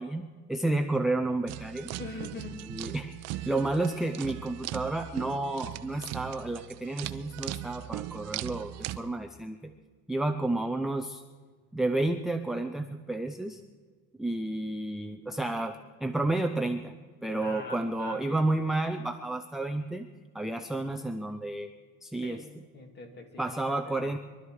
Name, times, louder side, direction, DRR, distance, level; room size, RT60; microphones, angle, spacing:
voice 1, 0.0-1.9 2.7-3.1 3.5-9.7 10.1-11.2 11.7-13.6 14.2-16.9 17.2-20.1 20.3-21.7 22.0-22.4 23.4-24.2, right 2 dB, ahead, 4 dB, 0.5 m, -31 dB
sound 1, 1.5-9.0, right 14 dB, 55° right, 0.7 m, -39 dB
voice 2, 2.0-2.7 3.3-3.9 17.4-18.4 22.2-24.2, left 2 dB, 35° left, 5 dB, 2.3 m, -44 dB
23.0 x 12.5 x 4.8 m, 1.5 s
cardioid pair, 155°, 31 cm